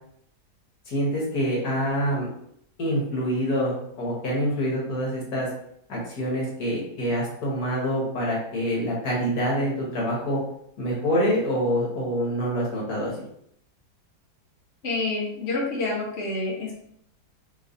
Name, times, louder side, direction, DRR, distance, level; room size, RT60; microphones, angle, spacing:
voice 1, 0.9-2.3 2.8-5.5 5.9-10.4 10.8-13.1, equal, 65° left, -3 dB, 1.6 m, -26 dB
voice 2, 14.8-16.8, left 2 dB, 45° left, -5 dB, 1.2 m, -28 dB
4.1 x 3.1 x 2.6 m, 0.70 s
omnidirectional pair, 1.8 m